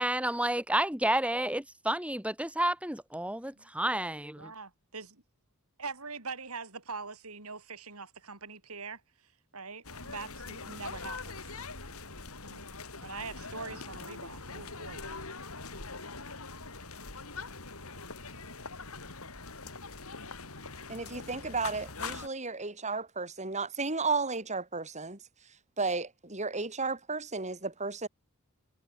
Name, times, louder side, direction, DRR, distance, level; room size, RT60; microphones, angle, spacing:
voice 1, 0.0-4.5, right 1 dB, 5° right, 4.3 m, -30 dB
voice 2, 4.4-5.1 5.8-9.0 9.5-11.6 12.5-12.6 13.0-15.0, right 4 dB, 75° right, 6.1 m, -43 dB
sound 1, 9.8-22.3, left 4 dB, 70° left, 6.0 m, -43 dB
voice 3, 20.9-25.2 25.8-28.1, right 4 dB, 30° right, 7.3 m, -33 dB
head